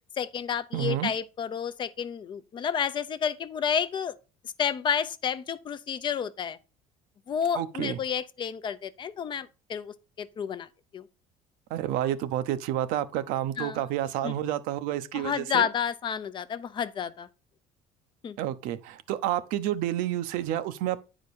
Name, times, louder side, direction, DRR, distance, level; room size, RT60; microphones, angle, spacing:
voice 1, 0.2-4.2 4.4-6.6 7.3-10.7 10.9-11.1 13.6-13.8 14.2-14.3 15.1-17.3 18.2-18.4, left 8 dB, 35° left, 0.6 m, -30 dB
voice 2, 0.7-1.1 7.5-8.0 11.7-15.7 18.4-21.0, right 12 dB, 80° right, 0.8 m, -29 dB
9.4 x 5.1 x 4.2 m
cardioid pair, 140°, 14 cm